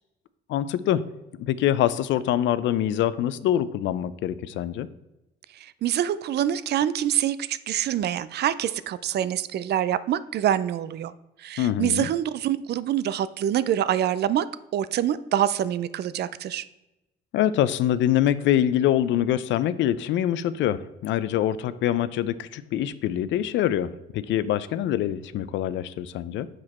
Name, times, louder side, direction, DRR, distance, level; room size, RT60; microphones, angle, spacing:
voice 1, 0.5-1.0 1.4-4.9 11.6-12.1 17.3-26.5, left 11 dB, 80° left, 16 dB, 0.4 m, -24 dB
voice 2, 5.5-11.1 11.4-14.5 14.7-16.6, right 11 dB, 60° right, 16 dB, 0.4 m, -25 dB
6.1 x 5.0 x 4.2 m, 0.96 s
cardioid pair, 100°, 19 cm